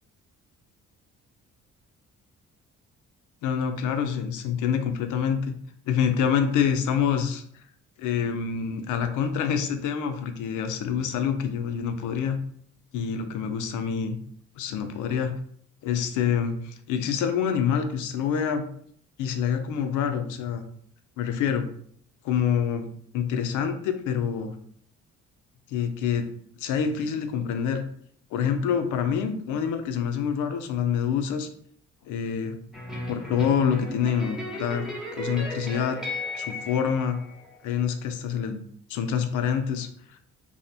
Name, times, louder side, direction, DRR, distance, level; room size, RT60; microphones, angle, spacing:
voice 1, 3.4-5.5 5.9-7.4 8.0-12.4 12.9-14.2 14.6-15.3 15.8-18.6 19.2-20.6 21.2-21.7 22.2-22.9 23.1-24.5 25.7-26.2 26.6-27.8 28.3-31.5 32.1-32.6 33.1-34.9 35.1-36.0 36.4-37.2 37.6-38.6 38.9-40.2, left 7 dB, 80° left, 7 dB, 0.5 m, -26 dB
sound 1, 32.7-37.8, left 1 dB, ahead, 0.7 m, -35 dB
2.6 x 2.0 x 2.6 m, 0.62 s
cardioid pair, 90°, 30 cm